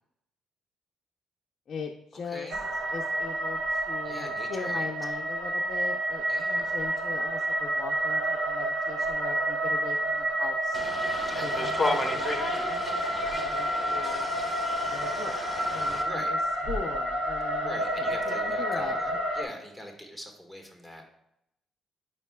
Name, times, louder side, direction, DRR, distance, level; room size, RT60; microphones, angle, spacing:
voice 1, 1.7-2.5 2.9-10.8 11.4-14.3 14.9-15.3 15.7-16.4 16.7-19.2, left 5 dB, 55° left, 2 dB, 0.5 m, -40 dB
voice 2, 2.2-2.6 4.0-4.8 6.3-6.7 11.3-12.1 16.0-16.3 17.6-21.0, equal, 5° right, 2 dB, 1.5 m, -43 dB
sound 1, 2.5-19.4, right 1 dB, 80° right, 1.0 m, -29 dB
sound 2, 10.7-16.0, left 2 dB, 15° left, 1.0 m, -33 dB
9.1 x 5.6 x 2.2 m, 0.78 s
cardioid pair, 90°, 0 cm